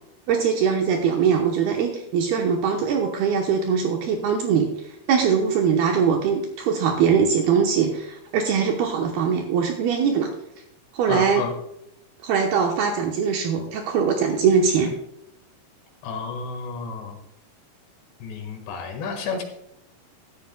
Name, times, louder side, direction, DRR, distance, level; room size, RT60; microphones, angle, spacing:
voice 1, 0.3-10.3 10.9-11.4 12.2-14.9, right 6 dB, 75° right, 2 dB, 2.6 m, -22 dB
voice 2, 11.1-11.5 16.0-17.2 18.2-19.4, left 5 dB, 75° left, 3 dB, 3.8 m, -31 dB
15.5 x 11.5 x 2.2 m, 0.81 s
omnidirectional pair, 5.0 m